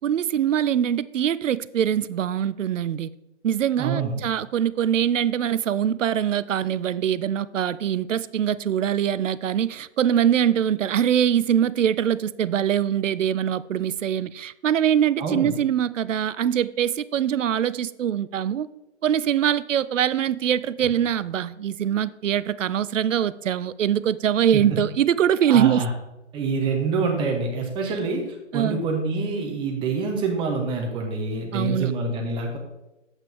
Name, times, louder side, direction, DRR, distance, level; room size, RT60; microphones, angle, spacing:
voice 1, 0.0-3.1 3.4-18.7 19.0-25.8 28.5-28.8 31.5-31.9, right 9 dB, 85° right, 0.5 m, -23 dB
voice 2, 3.8-4.1 15.2-15.5 24.5-24.8 25.5-25.9 26.3-28.2 28.5-32.6, right 4 dB, 15° right, 1.1 m, -26 dB
8.7 x 7.9 x 3.5 m
hypercardioid pair, 145°, 37 cm